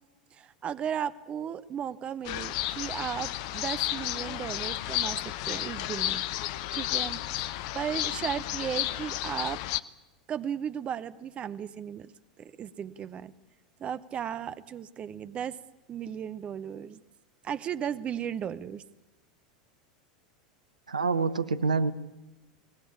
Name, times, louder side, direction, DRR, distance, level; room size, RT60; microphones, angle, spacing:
voice 1, 0.3-6.2 6.7-9.6 10.3-12.1 12.4-13.3 13.8-15.6 15.9-17.0 17.4-18.8, right 8 dB, 30° right, 14 dB, 0.8 m, -35 dB
sound 1, 2.2-9.8, left 14 dB, 50° left, 0.8 m, -32 dB
voice 2, 20.9-21.9, right 4 dB, 80° right, 15 dB, 1.0 m, -26 dB
23.0 x 19.0 x 8.5 m, 1.0 s
figure-of-eight pair, 85°, 4 cm